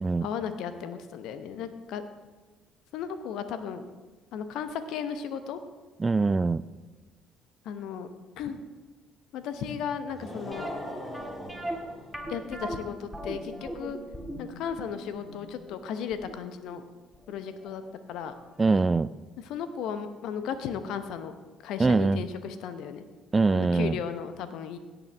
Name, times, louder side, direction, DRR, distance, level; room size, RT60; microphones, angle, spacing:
voice 1, 0.2-2.0 2.9-3.8 4.3-5.6 7.6-8.1 8.4-8.6 9.3-10.7 12.3-14.0 14.4-16.8 17.3-17.8 18.1-18.3 19.4-21.3 21.6-23.0 23.5-24.8, left 7 dB, 65° left, 10 dB, 0.8 m, -35 dB
voice 2, 6.0-6.6 18.6-19.1 21.8-22.2 23.3-24.0, right 3 dB, 25° right, 17 dB, 0.3 m, -23 dB
sound 1, 10.1-12.5, equal, 20° left, 2.1 m, -40 dB
sound 2, 10.5-17.4 17.7-17.8 18.3-18.5 18.7-18.8, right 1 dB, ahead, 1.8 m, -39 dB
17.0 x 8.0 x 3.4 m, 1.3 s
hypercardioid pair, 55°, 0 cm